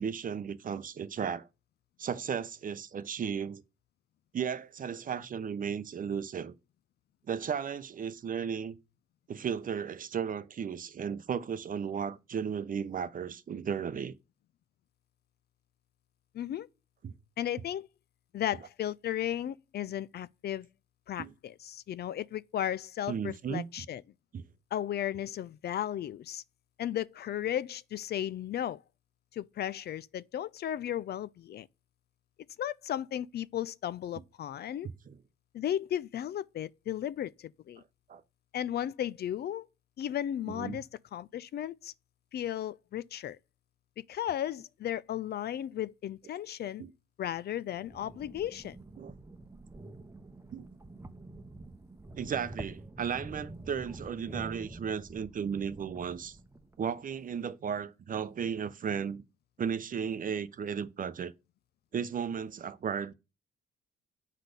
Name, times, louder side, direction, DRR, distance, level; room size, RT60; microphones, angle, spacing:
voice 1, 0.0-1.5 2.0-3.6 4.3-6.5 7.3-8.8 9.3-14.2 17.0-17.1 21.2-21.3 23.1-23.7 24.3-24.4 35.1-35.2 38.1-38.2 40.5-40.8 46.8-46.9 49.0-49.1 50.5-50.7 52.1-56.4 56.8-59.2 59.6-61.3 61.9-63.1, right 7 dB, 45° right, 0.7 m, -35 dB
voice 2, 16.3-16.7 17.4-17.9 18.3-20.7 21.1-24.0 24.7-26.4 26.8-28.8 29.3-31.7 32.6-34.9 35.5-37.8 38.5-39.7 40.0-41.9 42.3-43.4 44.1-46.8 47.2-48.8, left 11 dB, 55° left, 0.4 m, -35 dB
sound 1, 47.7-56.9, right 2 dB, 15° right, 0.8 m, -47 dB
8.2 x 4.1 x 6.6 m
cardioid pair, 90°, 20 cm